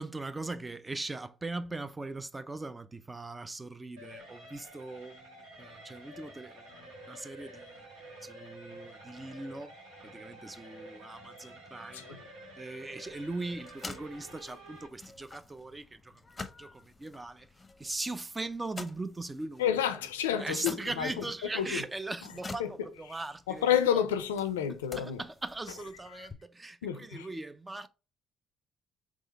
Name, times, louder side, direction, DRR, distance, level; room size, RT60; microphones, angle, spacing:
voice 1, 0.0-7.8 8.2-9.7 10.0-12.2 12.6-16.3 16.6-17.5 17.8-20.0 20.3-24.0 25.0-27.9, right 2 dB, 25° right, 0.5 m, -40 dB
sound 1, 4.0-14.9, right 1 dB, 80° right, 1.5 m, -50 dB
sound 2, 13.0-26.3, left 3 dB, 25° left, 0.7 m, -49 dB
voice 2, 19.6-21.2 21.5-21.8 22.6-22.7 23.5-25.2 26.1-26.3 26.8-27.3, left 9 dB, 90° left, 0.4 m, -30 dB
3.7 x 3.1 x 4.1 m
hypercardioid pair, 50°, 0 cm